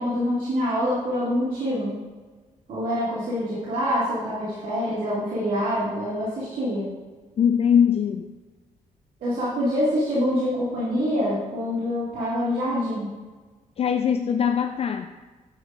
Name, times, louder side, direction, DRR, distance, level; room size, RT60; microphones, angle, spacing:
voice 1, 0.0-2.0 2.7-6.9 9.2-13.1, equal, 85° right, -9 dB, 2.1 m, -25 dB
voice 2, 7.4-8.3 13.8-15.1, left 8 dB, 45° left, 7 dB, 0.4 m, -21 dB
9.6 x 7.2 x 2.5 m, 1.3 s
cardioid pair, 110°, 14 cm